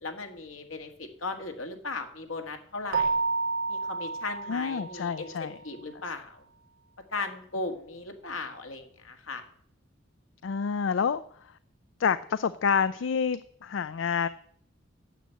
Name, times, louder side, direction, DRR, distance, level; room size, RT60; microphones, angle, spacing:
voice 1, 0.0-3.2 3.7-6.4 7.1-9.4, left 3 dB, 90° left, 5 dB, 1.7 m, -37 dB
Keyboard (musical), 2.9-5.4, right 4 dB, 75° right, 0.8 m, -30 dB
voice 2, 4.5-5.6 10.4-11.2 12.0-14.3, left 6 dB, 70° left, 16 dB, 0.4 m, -28 dB
9.2 x 7.7 x 8.2 m, 0.62 s
head